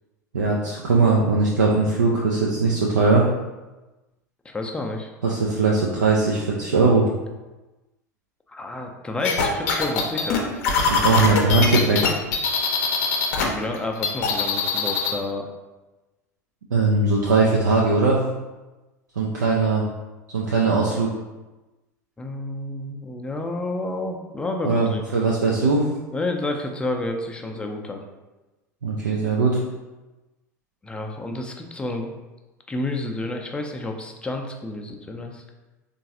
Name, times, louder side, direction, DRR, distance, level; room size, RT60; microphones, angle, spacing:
voice 1, 0.3-3.2 5.2-7.1 10.9-12.1 16.7-18.2 19.2-19.8 20.3-21.1 24.6-25.8 28.8-29.6, right 3 dB, 80° right, -3 dB, 0.4 m, -20 dB
voice 2, 4.4-5.1 8.5-10.4 13.4-15.5 22.2-25.0 26.1-28.0 30.8-32.1 32.7-35.4, left 2 dB, 10° left, 2 dB, 0.4 m, -30 dB
sound 1, 9.2-13.4 13.7-15.2, left 5 dB, 60° left, 0.6 m, -22 dB
3.7 x 2.5 x 2.7 m, 1.1 s
figure-of-eight pair, 80°, 9 cm